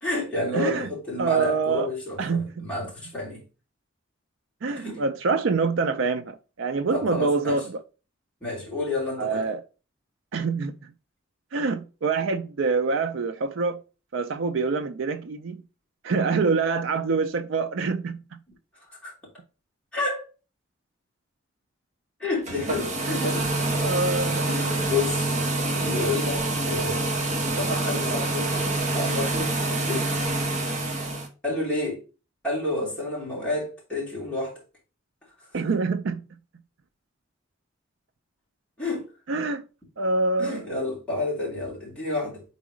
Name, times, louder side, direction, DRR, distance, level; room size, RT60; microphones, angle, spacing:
voice 1, 0.0-3.4 4.7-5.0 6.9-7.6 8.4-9.5 19.0-19.1 19.9-20.3 22.2-23.5 24.4-25.2 25.8-27.0 27.5-28.5 28.9-30.1 31.4-32.0 32.4-34.6 38.8-39.0 40.4-42.4, left 2 dB, 5° left, 2.9 m, -30 dB
voice 2, 0.5-0.9 1.2-1.9 2.2-2.7 4.6-7.8 9.2-9.6 10.3-10.7 11.5-13.8 14.1-15.6 16.0-18.2 23.1-23.2 23.8-24.5 35.5-36.2 39.3-39.6 40.0-40.6, right 4 dB, 65° right, 0.4 m, -25 dB
sound 1, 22.4-31.3, right 2 dB, 35° right, 1.4 m, -26 dB
4.7 x 4.0 x 5.0 m
head